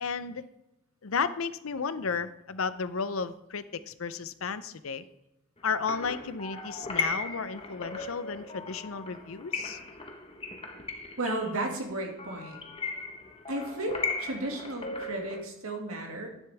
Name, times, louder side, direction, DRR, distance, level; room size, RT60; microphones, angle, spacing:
voice 1, 0.0-0.4 1.0-5.0 5.6-9.8, left 5 dB, 70° left, 14 dB, 0.6 m, -33 dB
sound 1, 5.6-15.4, left 3 dB, 25° left, 1.2 m, -37 dB
voice 2, 11.2-12.6 13.5-16.3, right 1 dB, 80° right, 2 dB, 2.2 m, -34 dB
11.5 x 10.0 x 3.4 m, 0.88 s
head